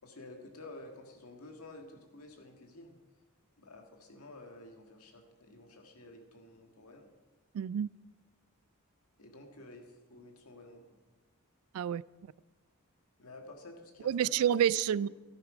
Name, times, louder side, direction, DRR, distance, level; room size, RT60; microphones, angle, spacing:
voice 1, 0.0-3.0 3.6-7.1 9.2-9.8 10.1-10.8 13.2-14.5 14.9-15.1, left 2 dB, 80° left, 4 dB, 1.9 m, -51 dB
voice 2, 7.5-7.9 11.7-12.0 14.0-15.1, right 9 dB, 75° right, 22 dB, 0.3 m, -28 dB
13.0 x 10.5 x 5.0 m, 1.3 s
head